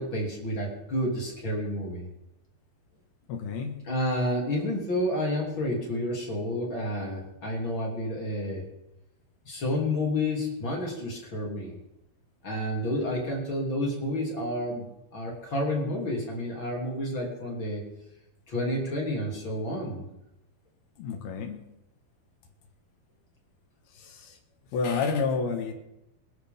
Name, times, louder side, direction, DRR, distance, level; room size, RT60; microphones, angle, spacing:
voice 1, 0.0-2.1 3.8-8.6 9.4-11.8 12.4-17.9 18.5-20.1, left 1 dB, 35° left, -2 dB, 3.3 m, -30 dB
voice 2, 3.3-3.8 21.0-21.6 24.0-24.4 24.7-25.7, left 5 dB, 75° left, 4 dB, 3.4 m, -29 dB
24.0 x 11.5 x 3.6 m, 0.91 s
omnidirectional pair, 4.4 m